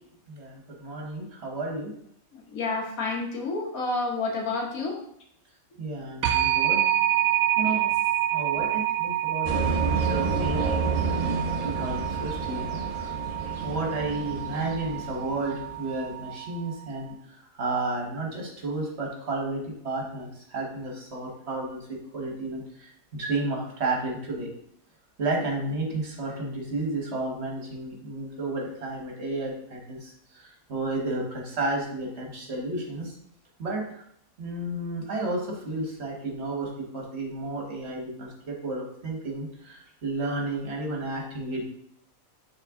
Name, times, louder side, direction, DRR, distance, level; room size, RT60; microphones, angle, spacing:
voice 1, 0.3-1.9 5.8-6.8 7.6-7.8 8.3-13.1 13.6-24.5 25.2-33.1 33.6-34.0 34.4-41.6, right 2 dB, 50° right, -1 dB, 1.7 m, -32 dB
voice 2, 2.3-5.0 7.6-7.9, left 3 dB, 80° left, 0 dB, 1.7 m, -30 dB
sound 1, 6.2-16.8, right 12 dB, 85° right, 1.0 m, -28 dB
sound 2, 9.5-15.9, right 4 dB, 30° right, 0.8 m, -30 dB
6.6 x 3.8 x 3.7 m, 0.70 s
omnidirectional pair, 1.5 m